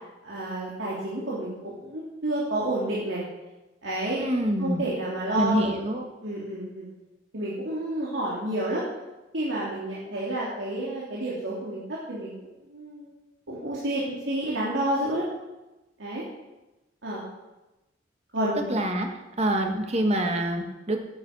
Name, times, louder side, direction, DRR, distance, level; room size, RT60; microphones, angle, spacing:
voice 1, 0.2-3.2 3.8-4.2 4.6-5.7 6.2-6.8 7.3-8.8 9.3-12.3 12.7-13.1 13.5-15.2 16.0-16.2 17.0-17.2 18.3-18.6, right 1 dB, 85° right, -6 dB, 3.0 m, -30 dB
voice 2, 4.2-4.9 5.3-6.1 18.7-19.1 19.4-21.0, right 1 dB, 35° right, 4 dB, 1.7 m, -26 dB
9.8 x 8.9 x 8.2 m, 1.0 s
head